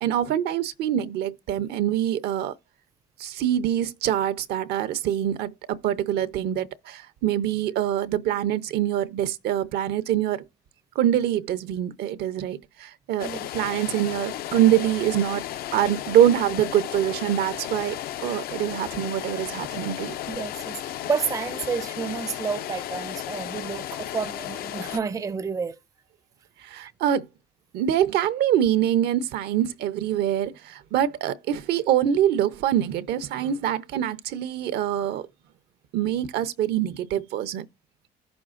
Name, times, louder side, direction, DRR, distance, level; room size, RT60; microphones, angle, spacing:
voice 1, 0.0-2.5 3.2-10.4 10.9-15.4 15.7-20.1 26.6-27.3 27.7-35.3 35.9-37.7, right 11 dB, 75° right, 0.7 m, -24 dB
sound 1, 13.2-25.0, left 12 dB, 65° left, 0.4 m, -34 dB
voice 2, 20.3-20.8 21.1-25.8 26.8-26.9, right 5 dB, 20° right, 0.4 m, -30 dB
16.0 x 6.0 x 2.4 m
cardioid pair, 110°, 17 cm